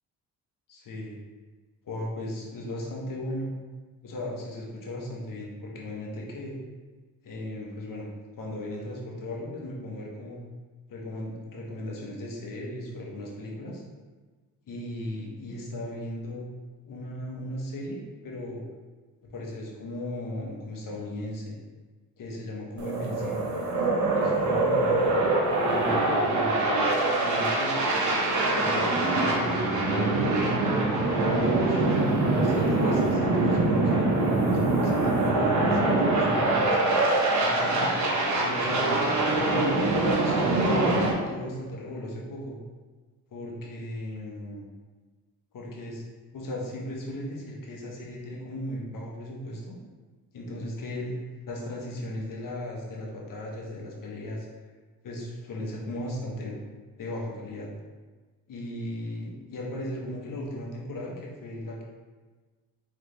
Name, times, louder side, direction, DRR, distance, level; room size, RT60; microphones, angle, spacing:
voice 1, 0.7-1.1 1.8-3.5 4.0-6.5 7.2-8.1 8.4-10.4 10.9-13.8 14.6-16.5 16.8-18.6 19.3-21.5 22.2-23.5 24.1-25.1 25.7-26.6 27.1-27.9 28.5-30.3 30.9-31.9 32.3-34.1 34.5-36.8 37.4-38.0 38.4-42.6 43.3-44.7 45.5-46.0 46.3-49.8 50.3-51.2 51.5-54.5 55.0-56.6 57.0-57.7 58.5-61.8, left 1 dB, 60° left, -2 dB, 1.3 m, -36 dB
sound 1, 22.8-41.1, right 2 dB, 50° right, 1.0 m, -24 dB
4.1 x 3.6 x 3.3 m, 1.3 s
supercardioid pair, 70°, 37 cm